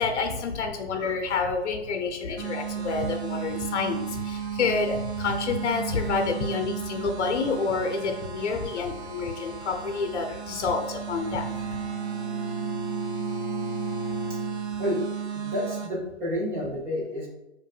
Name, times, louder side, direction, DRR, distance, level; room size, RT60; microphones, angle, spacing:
voice 1, 0.0-11.5, left 4 dB, 75° left, 4 dB, 0.6 m, -28 dB
sound 1, 2.4-15.9, right 8 dB, 70° right, 0.9 m, -34 dB
Bowed string instrument, 11.0-15.1, right 1 dB, 50° right, 1.2 m, -36 dB
voice 2, 15.3-17.3, equal, 5° right, -6 dB, 0.5 m, -30 dB
4.6 x 2.6 x 2.3 m, 0.90 s
hypercardioid pair, 150°, 34 cm